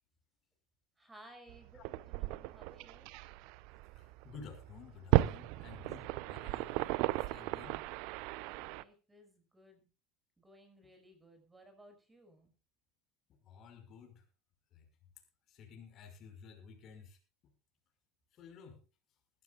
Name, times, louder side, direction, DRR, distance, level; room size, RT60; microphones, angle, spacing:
voice 1, 1.0-3.1 8.4-9.8 10.4-12.5, right 1 dB, 10° right, 6 dB, 5.8 m, -59 dB
sound 1, 1.5-8.8, right 18 dB, 55° right, 0.7 m, -35 dB
voice 2, 4.0-7.8 13.5-14.2 14.7-14.9 15.5-17.2 18.3-18.8, left 6 dB, 40° left, 5 dB, 5.5 m, -53 dB
21.0 x 14.0 x 2.5 m, 0.33 s
figure-of-eight pair, 80°, 0 cm